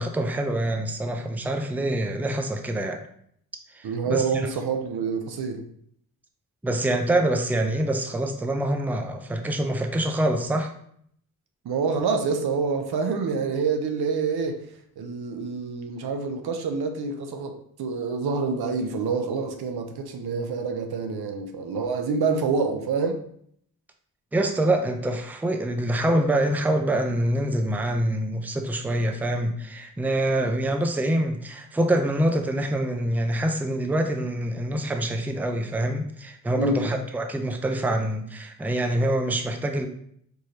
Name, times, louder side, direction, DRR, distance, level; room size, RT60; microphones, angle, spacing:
voice 1, 0.0-3.0 3.7-4.5 6.6-10.7 24.3-39.9, right 1 dB, 5° right, 0.4 m, -25 dB
voice 2, 3.8-5.6 11.6-14.6 15.0-23.2 36.6-36.9, right 4 dB, 90° right, 0.7 m, -27 dB
4.5 x 2.8 x 3.2 m
cardioid pair, 90°, 37 cm